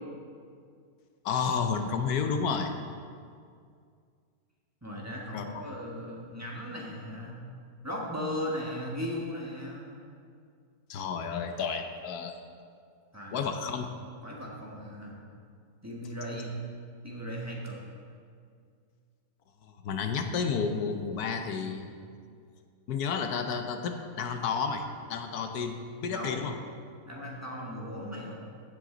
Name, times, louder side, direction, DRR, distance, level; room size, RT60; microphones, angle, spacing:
voice 1, 1.2-2.7 5.3-5.6 10.9-12.4 13.3-13.9 19.6-21.9 22.9-26.5, left 6 dB, 80° left, 6 dB, 1.3 m, -31 dB
voice 2, 4.8-7.4 7.8-10.0 13.1-13.5 14.2-15.2 15.8-16.5 17.0-17.8 26.1-26.4 27.0-28.4, equal, 10° right, -4 dB, 1.5 m, -37 dB
15.0 x 7.8 x 3.9 m, 2.2 s
omnidirectional pair, 1.6 m